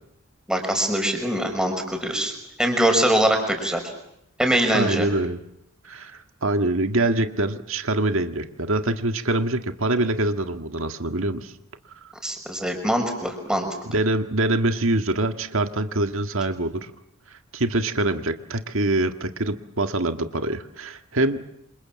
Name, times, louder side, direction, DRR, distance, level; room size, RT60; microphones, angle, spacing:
voice 1, 0.5-2.3 2.6-3.8 4.4-5.1 12.2-13.7, right 1 dB, 5° right, 4 dB, 5.6 m, -22 dB
voice 2, 4.7-5.4 5.8-11.5 13.9-16.9 17.5-21.4, right 2 dB, 65° right, 7 dB, 1.8 m, -24 dB
28.0 x 27.0 x 7.5 m, 0.79 s
head